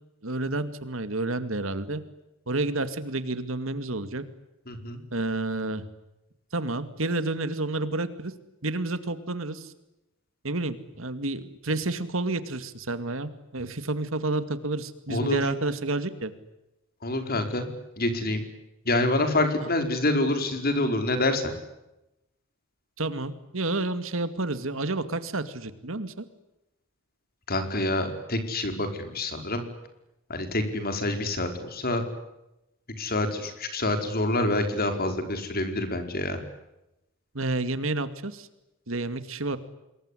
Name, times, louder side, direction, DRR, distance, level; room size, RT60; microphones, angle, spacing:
voice 1, 0.2-2.0 2.5-4.2 5.1-5.8 6.5-8.3 8.6-9.7 10.4-16.3 19.6-19.7 23.0-26.2 37.3-38.5 38.9-39.6, right 2 dB, 70° right, 11 dB, 2.3 m, -30 dB
voice 2, 4.7-5.0 15.1-15.4 17.0-17.7 18.0-18.4 18.8-21.5 27.5-29.6 30.3-32.0 33.0-36.4, left 2 dB, 45° left, 7 dB, 4.9 m, -27 dB
27.0 x 22.0 x 10.0 m, 0.91 s
head